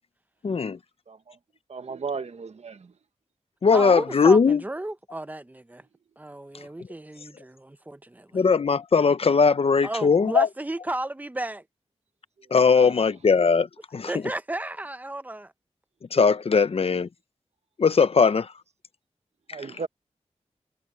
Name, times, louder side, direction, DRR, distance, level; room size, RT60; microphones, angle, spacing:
voice 1, 0.4-0.8 3.6-4.6 8.3-10.5 12.5-13.7 13.9-14.1 16.1-17.1 17.8-18.5, left 5 dB, 55° left, 0.7 m, -19 dB
voice 2, 1.7-2.9 12.7-12.9 19.5-19.9, right 5 dB, 70° right, 1.3 m, -35 dB
voice 3, 3.7-5.8 6.2-8.4 9.8-11.6 14.0-15.5, right 1 dB, 15° right, 0.8 m, -33 dB
wide cardioid pair, 115°, 12 cm